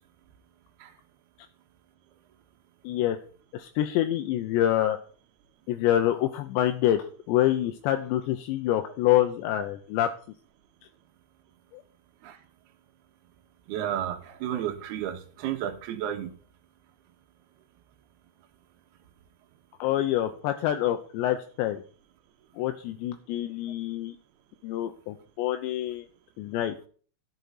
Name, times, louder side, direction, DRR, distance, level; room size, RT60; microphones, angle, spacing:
voice 1, 2.8-3.2 3.5-5.0 5.7-10.1 11.7-11.8 19.8-21.8 22.6-24.2 24.6-26.1 26.4-26.7, left 12 dB, 80° left, 7 dB, 2.9 m, -26 dB
voice 2, 13.7-16.3, right 10 dB, 70° right, 5 dB, 3.1 m, -32 dB
12.5 x 7.4 x 5.6 m, 0.42 s
omnidirectional pair, 5.2 m